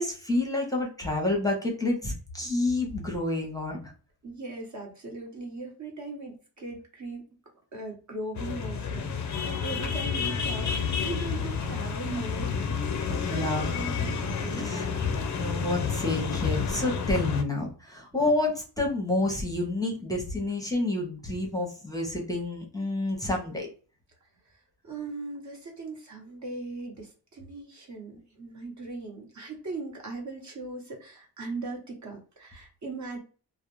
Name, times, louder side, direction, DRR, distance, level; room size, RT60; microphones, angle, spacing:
voice 1, 0.0-3.9 13.2-13.8 14.5-14.8 15.3-23.7, left 2 dB, 10° left, -1 dB, 0.7 m, -29 dB
voice 2, 4.2-7.2 7.7-15.2 24.2-33.2, right 3 dB, 40° right, 0 dB, 1.0 m, -39 dB
sound 1, 8.3-17.4, left 6 dB, 45° left, 0.4 m, -30 dB
2.4 x 2.0 x 3.0 m, 0.37 s
cardioid pair, 105°, 43 cm